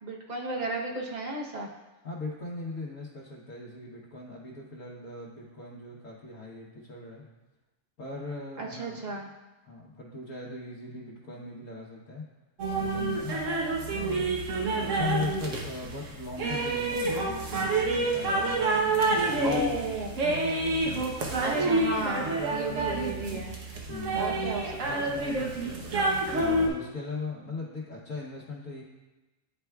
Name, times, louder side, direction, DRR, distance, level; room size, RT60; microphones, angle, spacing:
voice 1, 0.0-1.7 8.6-9.3 19.4-20.1 21.4-23.6 24.2-25.3, right 2 dB, 40° right, -1 dB, 0.9 m, -34 dB
voice 2, 2.0-7.2 8.0-9.0 9.6-12.2 12.8-13.4 13.8-14.4 14.8-20.4 23.9-24.4 26.3-28.8, left 3 dB, 85° left, -6 dB, 1.5 m, -39 dB
sound 1, 12.6-26.7, right 2 dB, 80° right, 1.2 m, -28 dB
9.9 x 4.5 x 2.3 m, 1.1 s
omnidirectional pair, 1.3 m